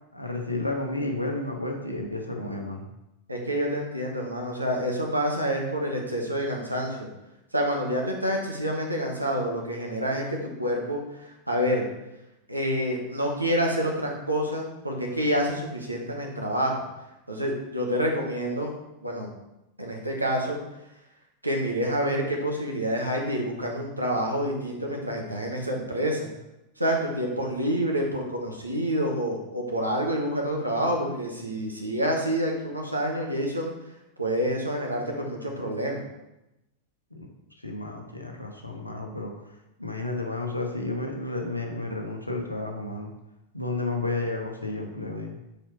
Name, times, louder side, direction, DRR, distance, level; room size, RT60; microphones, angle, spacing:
voice 1, 0.1-2.9 37.1-37.3 37.6-39.3 39.8-43.1 43.5-45.4, left 2 dB, 85° left, 1 dB, 0.8 m, -31 dB
voice 2, 3.3-7.1 7.5-11.9 12.5-16.9 17.3-18.7 19.0-19.3 19.8-20.6 21.4-26.3 26.8-33.7 34.2-36.0, equal, 85° right, 0 dB, 1.2 m, -28 dB
5.0 x 4.4 x 4.6 m, 0.91 s
figure-of-eight pair, 90°, 0 cm